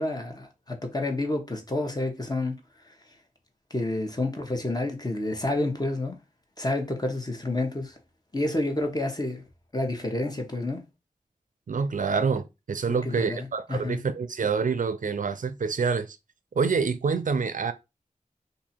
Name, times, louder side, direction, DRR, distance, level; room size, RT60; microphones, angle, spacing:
voice 1, 0.0-2.6 3.7-6.2 6.6-7.9 8.3-9.4 9.7-10.8 12.9-14.0, left 2 dB, 30° left, 1.1 m, -29 dB
voice 2, 11.7-16.2 16.5-17.7, right 5 dB, 70° right, 0.4 m, -27 dB
2.7 x 2.7 x 4.3 m
cardioid pair, 40°, 14 cm